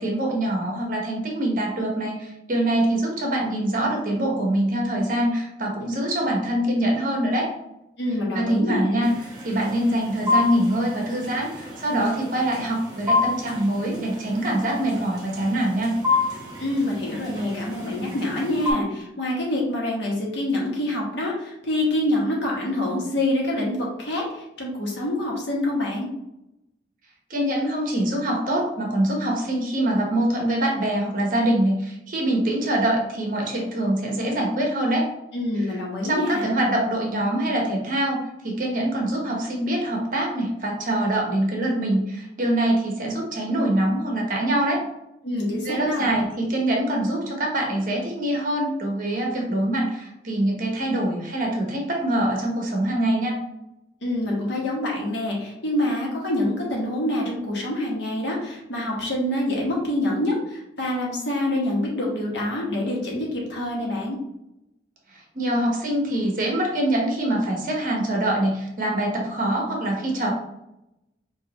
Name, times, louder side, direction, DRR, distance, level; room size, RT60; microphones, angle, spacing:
voice 1, 0.0-7.5 8.3-9.1 9.4-16.0 27.3-35.1 36.0-38.2 38.4-44.8 45.6-53.4 65.1-70.3, right 1 dB, 45° right, 0 dB, 1.1 m, -24 dB
voice 2, 8.0-9.1 16.6-26.1 35.3-36.5 45.2-46.1 54.0-64.2, left 1 dB, 75° left, -3 dB, 1.4 m, -26 dB
sound 1, 9.0-18.7, left 3 dB, 20° right, 1.1 m, -29 dB
5.4 x 2.8 x 3.0 m, 0.87 s
head